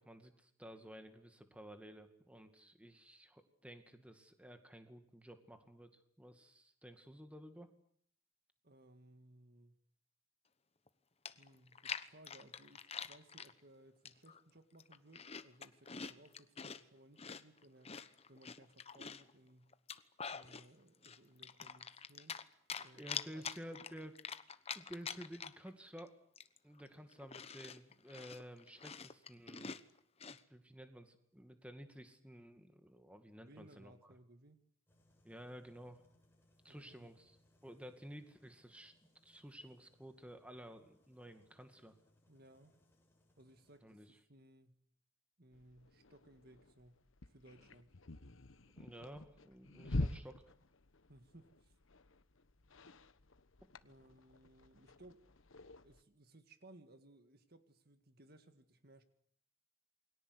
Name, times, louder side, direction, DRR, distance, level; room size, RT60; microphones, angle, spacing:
voice 1, 0.0-7.7 22.9-24.1 24.7-26.1 26.6-29.8 30.5-33.9 35.2-36.0 36.6-37.4 37.6-38.9 39.2-41.9 43.8-44.2 48.8-50.4, equal, 5° right, 2.2 m, -53 dB
voice 2, 8.6-9.8 11.4-18.0 18.3-19.8 20.3-22.4 22.7-23.8 33.4-34.6 36.7-37.1 42.3-42.7 43.4-44.0 44.3-44.8 45.4-47.0 47.3-47.9 51.1-51.7 53.8-55.2 55.8-59.0, right 1 dB, 50° right, 1.9 m, -62 dB
Chewing mastication, 10.9-11.0 11.3-13.5 14.0-14.4 14.7-16.8 17.2-19.3 19.7-20.7 21.0-22.4 22.7-25.7 26.0-26.1 26.4-30.4, left 6 dB, 30° left, 1.0 m, -46 dB
sound 1, 34.9-43.8, left 1 dB, 10° left, 7.5 m, -73 dB
sound 2, 45.5-56.0, left 2 dB, 75° left, 1.2 m, -46 dB
28.5 x 22.0 x 8.1 m
head